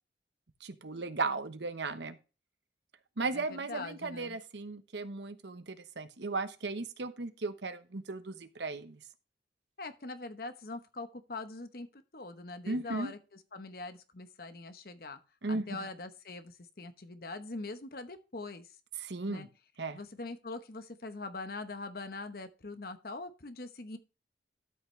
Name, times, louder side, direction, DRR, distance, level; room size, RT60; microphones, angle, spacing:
voice 1, 0.6-2.2 3.2-9.0 12.7-13.1 15.4-15.8 19.0-19.5 19.8-20.0, right 3 dB, 70° right, 10 dB, 1.0 m, -36 dB
voice 2, 3.3-4.4 9.8-13.2 13.5-15.2 15.5-18.7 19.3-19.5 19.9-24.0, left 3 dB, 55° left, 9 dB, 1.0 m, -43 dB
13.0 x 5.9 x 3.2 m, 0.32 s
head